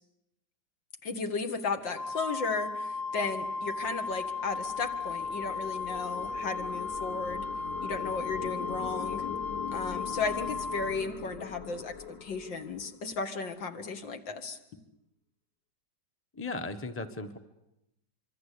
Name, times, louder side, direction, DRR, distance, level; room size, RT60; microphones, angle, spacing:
voice 1, 1.0-7.4 7.8-9.3 9.7-14.6, left 4 dB, 70° left, 6 dB, 2.5 m, -35 dB
Wind instrument woodwind instrument, 2.0-10.9, left 4 dB, 35° left, 1.8 m, -35 dB
sound 1, 2.7-13.3, left 6 dB, 50° left, 2.0 m, -43 dB
voice 2, 16.3-17.4, left 3 dB, 10° left, 8 dB, 1.0 m, -36 dB
25.5 x 24.0 x 8.5 m, 0.86 s
omnidirectional pair, 2.1 m